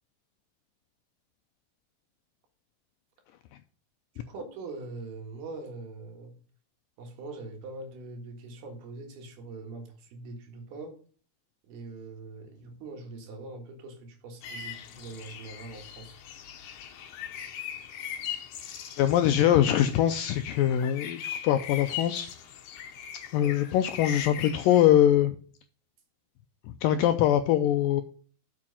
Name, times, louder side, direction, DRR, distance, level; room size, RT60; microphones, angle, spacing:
voice 1, 4.2-6.3 7.0-10.9 11.7-16.2 23.4-23.5, right 3 dB, 75° right, 3 dB, 3.6 m, -42 dB
sound 1, 14.4-24.9, left 9 dB, 65° left, 1.9 m, -40 dB
voice 2, 19.0-22.3 23.3-25.4 26.8-28.0, left 11 dB, 90° left, 9 dB, 2.0 m, -23 dB
7.4 x 6.2 x 5.8 m, 0.42 s
omnidirectional pair, 4.6 m